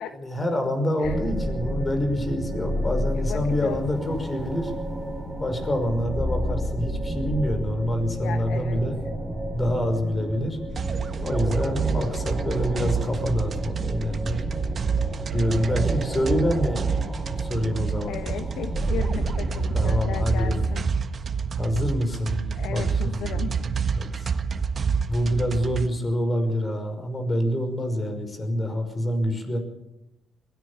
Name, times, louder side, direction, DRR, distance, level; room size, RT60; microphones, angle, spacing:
voice 1, 0.2-4.7 5.4-9.0 9.5-10.6 11.2-14.4 15.3-17.1 17.4-18.2 19.7-20.6 21.6-23.6 24.0-24.3 25.1-29.6, equal, 25° left, 7 dB, 5.7 m, -26 dB
sound 1, 1.0-20.8, equal, ahead, 6.3 m, -31 dB
voice 2, 3.1-3.8 8.1-8.8 18.1-20.9 22.5-23.6, left 8 dB, 85° left, 8 dB, 1.4 m, -35 dB
sound 2, 10.7-25.9, right 6 dB, 45° right, 1.5 m, -28 dB
22.5 x 17.0 x 7.0 m, 0.87 s
cardioid pair, 90°, 0 cm